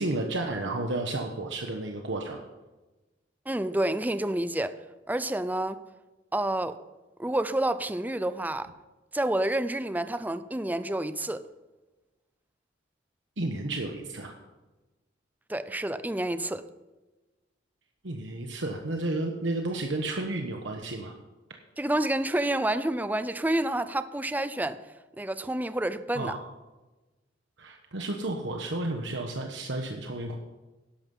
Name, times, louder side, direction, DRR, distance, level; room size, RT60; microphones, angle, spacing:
voice 1, 0.0-2.4 13.4-14.4 18.0-21.1 26.1-26.5 27.6-30.3, right 2 dB, 70° right, 1.2 m, -32 dB
voice 2, 3.5-4.8 5.1-5.8 6.3-6.8 7.2-8.7 9.1-11.4 15.5-16.6 21.8-24.8 25.2-26.3, right 1 dB, 10° right, 0.5 m, -29 dB
12.0 x 11.5 x 5.5 m
head